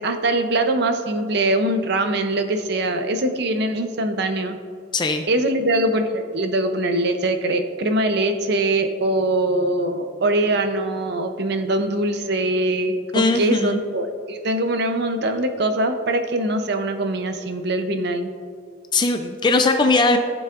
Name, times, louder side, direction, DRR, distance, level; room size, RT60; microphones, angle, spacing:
voice 1, 0.0-4.6 5.3-18.3, right 1 dB, 55° right, 7 dB, 0.7 m, -22 dB
voice 2, 4.9-5.2 13.1-13.8 18.9-20.2, left 3 dB, 25° left, 6 dB, 0.3 m, -19 dB
15.0 x 7.1 x 2.5 m, 2.3 s
head